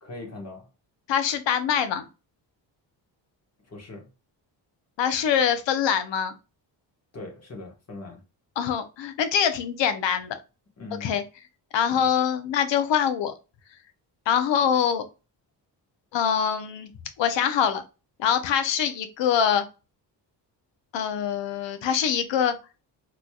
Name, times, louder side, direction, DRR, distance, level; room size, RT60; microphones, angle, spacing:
voice 1, 0.0-0.7 3.6-4.1 7.1-8.2 10.8-11.1 11.9-12.0, left 2 dB, 35° left, 1.5 m, -40 dB
voice 2, 1.1-2.0 5.0-6.3 8.6-10.4 11.0-11.2 11.7-13.3 14.3-15.0 16.1-16.9 17.2-17.8 18.2-19.6 20.9-22.5, left 8 dB, 85° left, 0.8 m, -24 dB
3.8 x 3.1 x 2.3 m
cardioid pair, 105°, 43 cm